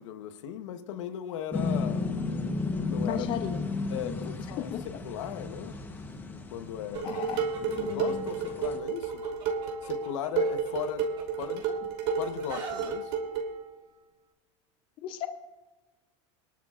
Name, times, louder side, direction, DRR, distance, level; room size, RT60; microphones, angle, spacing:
voice 1, 0.0-2.1 2.9-3.3 3.9-5.8 6.5-7.3 7.5-9.2 9.8-11.0 11.4-11.6 12.2-13.1, left 9 dB, 75° left, 1.1 m, -37 dB
sound 1, 1.5-8.8, left 3 dB, 10° left, 1.0 m, -34 dB
voice 2, 3.0-3.6 4.6-4.8 7.0-8.2 15.0-15.3, left 11 dB, 30° left, 0.6 m, -35 dB
Chicken rooster, 6.9-8.7 9.1-11.7 12.0-12.9, right 5 dB, 30° right, 3.7 m, -43 dB
Dishes pots and pans, 6.9-13.6, right 5 dB, 60° right, 3.1 m, -31 dB
23.0 x 12.0 x 2.5 m
supercardioid pair, 155°, 16 cm